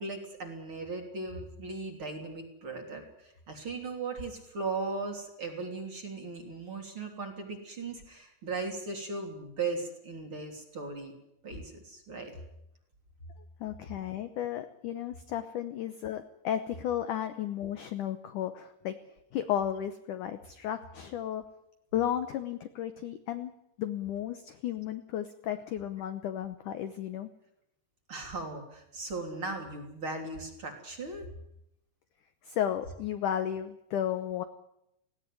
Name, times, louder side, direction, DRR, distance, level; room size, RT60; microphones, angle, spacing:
voice 1, 0.0-11.1 11.4-12.3 14.0-14.1 28.1-31.3, right 3 dB, 30° right, 3 dB, 3.5 m, -38 dB
voice 2, 13.6-18.9 19.3-21.4 21.9-23.5 23.8-27.3 32.4-34.4, left 10 dB, 75° left, 9 dB, 1.8 m, -33 dB
19.0 x 17.0 x 9.6 m, 0.81 s
omnidirectional pair, 5.0 m